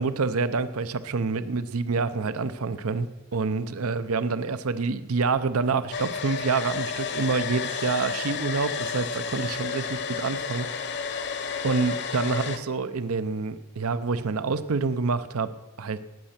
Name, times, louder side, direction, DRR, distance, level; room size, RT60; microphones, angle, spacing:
voice 1, 0.0-10.7 11.6-15.5 15.8-16.0, right 4 dB, 80° right, 14 dB, 0.7 m, -27 dB
Domestic sounds home sounds, 5.9-12.6, left 5 dB, 50° left, 0.9 m, -31 dB
18.5 x 8.8 x 5.8 m, 1.1 s
head